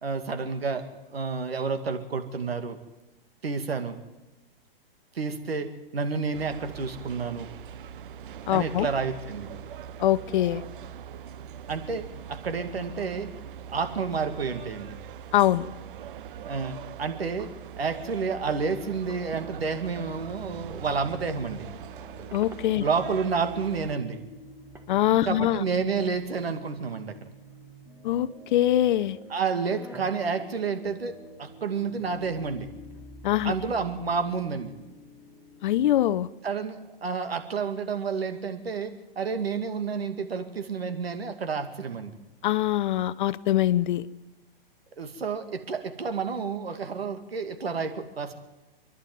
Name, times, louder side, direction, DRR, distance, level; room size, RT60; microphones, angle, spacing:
voice 1, 0.0-0.8 1.1-2.8 3.4-3.9 5.1-7.5 8.5-9.5 11.7-13.3 13.7-15.0 16.4-21.7 22.8-24.2 25.2-27.3 29.3-31.1 31.4-32.7 33.4-34.7 36.4-42.1 45.0-48.4, right 5 dB, 90° right, 7 dB, 2.4 m, -30 dB
sound 1, 6.3-23.9, right 9 dB, 60° right, 0.9 m, -42 dB
voice 2, 8.5-8.9 10.0-10.6 15.3-15.7 22.3-22.8 24.9-25.6 28.0-29.2 33.2-33.5 35.6-36.3 42.4-44.1, left 12 dB, 55° left, 16 dB, 0.8 m, -23 dB
sound 2, 19.8-35.9, right 1 dB, 10° left, 7.7 m, -48 dB
sound 3, 22.2-23.2 23.5-23.6 24.1-24.2 24.5-25.6 26.1-27.2 27.5-28.0 28.4-28.7 29.1-32.0 32.3-33.1, right 2 dB, 10° right, 1.9 m, -51 dB
27.0 x 11.0 x 9.5 m, 1.1 s
hypercardioid pair, 130°, 29 cm